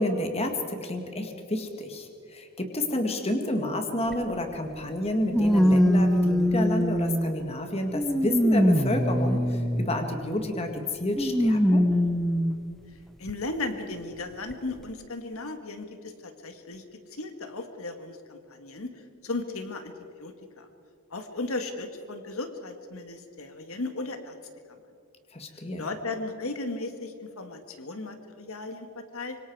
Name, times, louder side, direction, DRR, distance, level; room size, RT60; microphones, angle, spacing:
voice 1, 0.0-11.8 25.3-25.9, left 1 dB, 25° left, 5 dB, 1.9 m, -30 dB
sound 1, 4.1-4.2 5.3-7.4 7.9-10.0 11.2-12.6 13.3-13.4 14.5-14.6, equal, ahead, 0.8 m, -22 dB
voice 2, 13.2-19.9 20.2-20.7 21.1-24.4 25.8-29.4, left 2 dB, 70° left, 7 dB, 1.7 m, -36 dB
25.5 x 24.0 x 4.7 m, 2.4 s
head